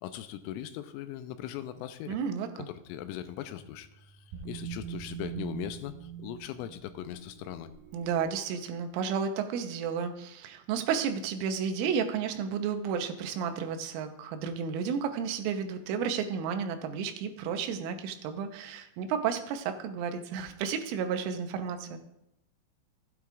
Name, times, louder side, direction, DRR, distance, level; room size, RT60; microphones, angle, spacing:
voice 1, 0.0-2.2 2.6-4.1 4.5-7.7, left 11 dB, 90° left, 10 dB, 3.2 m, -39 dB
voice 2, 2.1-2.5 7.9-22.0, right 7 dB, 90° right, 7 dB, 3.3 m, -32 dB
sound 1, 2.9-8.3, right 9 dB, 70° right, 2.6 m, -44 dB
15.5 x 9.0 x 2.4 m, 0.83 s
omnidirectional pair, 5.7 m